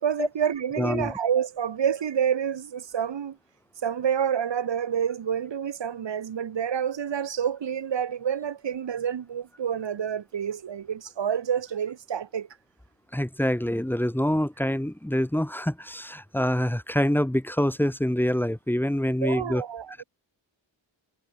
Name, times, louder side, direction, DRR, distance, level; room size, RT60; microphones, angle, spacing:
voice 1, 0.0-3.4 3.8-12.5 19.2-20.0, right 8 dB, 65° right, 5.8 m, -28 dB
voice 2, 0.8-1.1 13.1-19.6 19.9-20.0, equal, 5° left, 2.7 m, -26 dB
wide cardioid pair, 165°, 46 cm